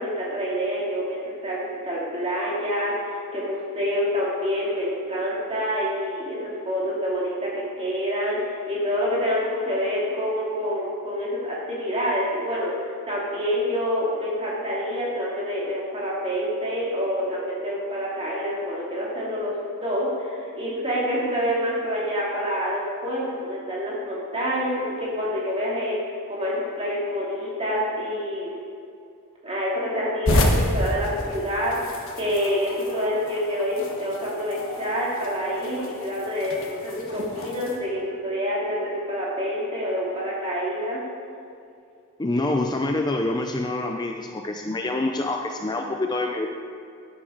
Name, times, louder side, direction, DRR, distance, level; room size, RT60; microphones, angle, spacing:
voice 1, 0.0-19.6 19.8-26.0 26.3-28.6 29.4-31.7 32.2-41.0, equal, 25° right, -6 dB, 3.0 m, -27 dB
sound 1, 30.2-37.8, left 1 dB, 60° left, 1.5 m, -29 dB
voice 2, 42.2-46.5, left 2 dB, 20° left, 3 dB, 0.5 m, -26 dB
11.5 x 11.0 x 3.9 m, 2.4 s
head